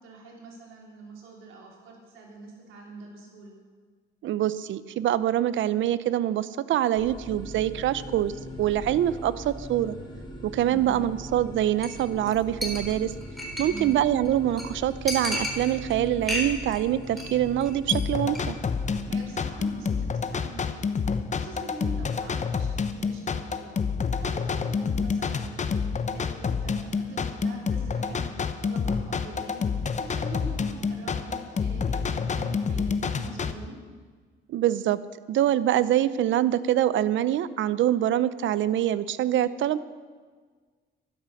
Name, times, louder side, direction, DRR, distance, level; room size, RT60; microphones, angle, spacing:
voice 1, 0.0-3.6 10.6-11.1 13.6-13.9 19.1-20.9 21.3-23.8 24.2-29.6 30.0-33.8, right 2 dB, 90° right, -1 dB, 3.5 m, -43 dB
voice 2, 4.2-8.3 8.6-10.0 10.4-13.1 13.6-18.6 34.5-35.0 35.3-39.8, right 12 dB, 75° right, 16 dB, 0.6 m, -25 dB
sound 1, 7.0-19.8, equal, 20° left, 3.3 m, -40 dB
Chink clink, 11.8-12.0 12.3-12.4 12.6-13.9 14.3-14.4 14.6-14.7 15.1-15.9 16.2-16.8 17.0-17.3 17.6-17.9 18.3-18.4, left 1 dB, ahead, 4.0 m, -32 dB
sound 2, 17.9-33.5, left 5 dB, 35° left, 0.9 m, -28 dB
12.5 x 11.5 x 6.4 m, 1.5 s
cardioid pair, 90°, 20 cm